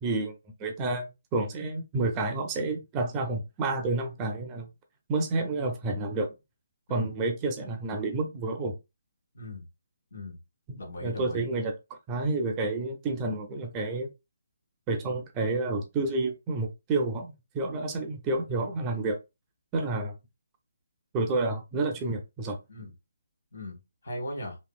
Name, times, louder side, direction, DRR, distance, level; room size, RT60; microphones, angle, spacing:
voice 1, 0.0-1.1 1.3-4.7 5.1-6.3 6.9-8.7 10.7-11.7 12.1-14.1 14.9-19.2 19.7-20.2 21.1-22.6, right 3 dB, 20° right, 0.5 m, -30 dB
voice 2, 9.3-9.7 10.1-10.4 10.8-11.5 22.0-22.2 22.7-22.9 23.5-24.6, left 1 dB, 75° left, 1.7 m, -39 dB
3.1 x 2.9 x 2.3 m
hypercardioid pair, 155°, 0 cm